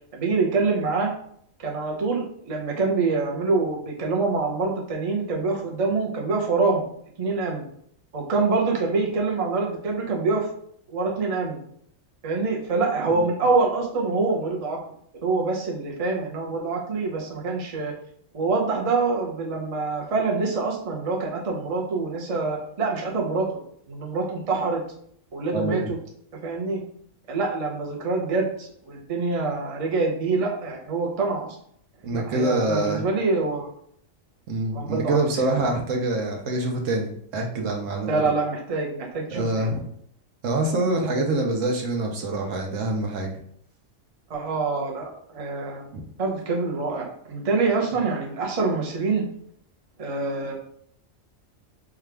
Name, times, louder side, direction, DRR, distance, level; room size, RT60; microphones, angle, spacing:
voice 1, 0.1-1.1 1.6-6.8 7.2-7.6 8.1-10.5 10.9-11.6 12.2-14.8 15.2-17.9 18.3-23.5 23.9-24.8 25.3-26.0 26.4-26.8 27.3-31.6 32.1-33.7 34.7-35.5 38.1-39.7 44.3-45.9 46.2-49.2 50.0-50.5, right 3 dB, 35° right, -1 dB, 0.7 m, -25 dB
voice 2, 25.5-25.9 32.0-33.0 34.5-38.3 39.3-39.8 40.4-43.3, right 2 dB, 75° right, 2 dB, 1.1 m, -25 dB
4.9 x 2.3 x 3.3 m, 0.66 s
omnidirectional pair, 1.3 m